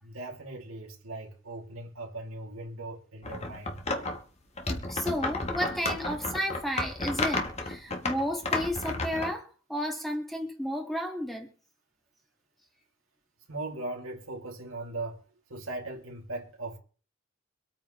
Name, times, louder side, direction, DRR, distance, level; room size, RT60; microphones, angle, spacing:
voice 1, 0.0-3.8 13.5-15.2 15.5-16.8, right 2 dB, 80° right, 2.8 m, -39 dB
sound 1, 3.2-4.2 4.6-9.3, left 2 dB, 30° left, 1.6 m, -32 dB
voice 2, 4.9-11.5, equal, ahead, 2.2 m, -32 dB
25.0 x 9.0 x 3.3 m
head